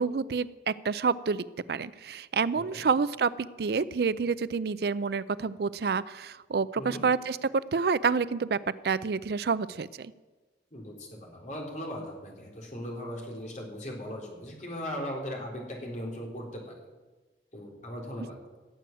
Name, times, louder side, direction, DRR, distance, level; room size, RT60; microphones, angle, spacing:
voice 1, 0.0-7.4 7.7-8.6 8.8-10.1, right 5 dB, 60° right, 17 dB, 0.4 m, -28 dB
voice 2, 10.7-16.7 17.5-18.4, equal, 40° left, 0 dB, 3.6 m, -38 dB
16.5 x 7.7 x 9.1 m, 1.3 s
head